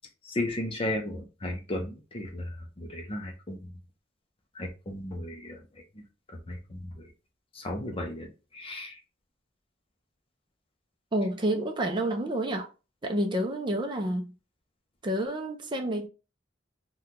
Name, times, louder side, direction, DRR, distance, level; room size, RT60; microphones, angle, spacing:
voice 1, 0.2-3.7 4.5-5.6 6.0-6.1 6.3-7.1 7.5-9.0, left 1 dB, 30° left, 0.6 m, -35 dB
voice 2, 11.1-12.7 13.0-14.3 15.0-16.1, right 1 dB, 25° right, 0.4 m, -29 dB
3.6 x 2.2 x 2.9 m
head